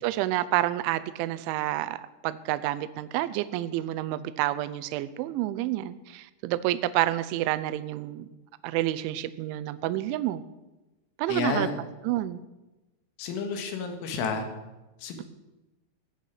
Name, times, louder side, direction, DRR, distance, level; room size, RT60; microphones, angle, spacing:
voice 1, 0.0-8.3 8.6-10.4 11.2-11.7 12.0-12.4, right 15 dB, 80° right, 14 dB, 3.0 m, -29 dB
voice 2, 11.3-11.8 13.2-14.5 15.0-15.2, left 4 dB, 80° left, 5 dB, 4.1 m, -30 dB
16.0 x 9.9 x 6.6 m, 1.1 s
omnidirectional pair, 5.7 m